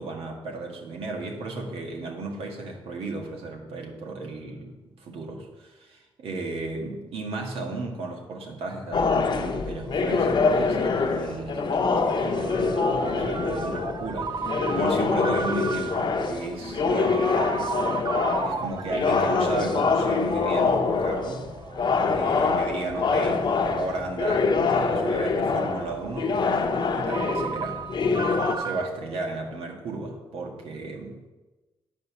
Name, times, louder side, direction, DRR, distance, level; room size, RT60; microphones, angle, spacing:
voice 1, 0.0-17.3 18.3-21.5 22.1-27.8 28.6-31.3, right 2 dB, 85° right, 1 dB, 1.8 m, -35 dB
sound 1, 8.9-28.5, left 4 dB, 55° left, 0.9 m, -25 dB
Ringtone, 9.5-28.9, right 5 dB, 45° right, 0.5 m, -36 dB
9.1 x 5.4 x 6.9 m, 1.2 s
cardioid pair, 95°, 10 cm